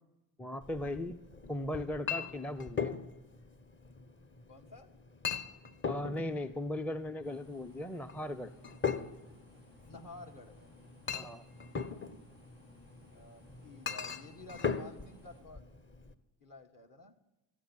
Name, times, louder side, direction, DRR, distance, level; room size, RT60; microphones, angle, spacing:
voice 1, 0.4-1.2 1.5-2.9 5.8-8.5 11.1-11.4, left 1 dB, 5° left, 10 dB, 0.5 m, -38 dB
Chink clink, 0.6-16.1, left 6 dB, 25° left, 1.1 m, -40 dB
voice 2, 4.5-4.9 9.9-10.7 13.1-15.6 16.4-17.1, left 2 dB, 45° left, 4 dB, 1.9 m, -51 dB
sound 1, 7.2-15.4, left 1 dB, 80° left, 7.6 m, -61 dB
14.0 x 8.7 x 9.2 m, 0.98 s
hypercardioid pair, 55°, 47 cm